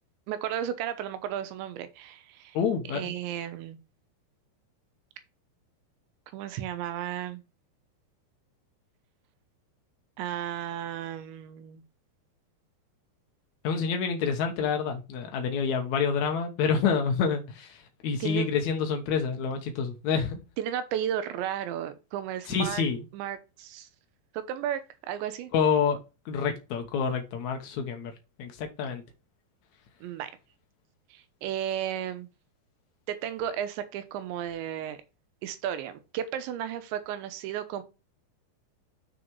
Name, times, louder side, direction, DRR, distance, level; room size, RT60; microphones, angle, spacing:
voice 1, 0.3-2.6 2.9-3.8 6.3-7.4 10.2-11.8 18.2-18.5 20.6-22.9 23.1-23.9 24.3-25.5 30.0-30.3 31.1-32.3 33.1-35.0 35.4-37.8, right 10 dB, 90° right, 3.3 m, -34 dB
voice 2, 2.5-3.1 13.6-20.4 22.5-23.0 25.5-26.0 26.2-28.1 28.4-29.0, left 6 dB, 85° left, 1.6 m, -28 dB
7.0 x 6.3 x 4.7 m
omnidirectional pair, 5.1 m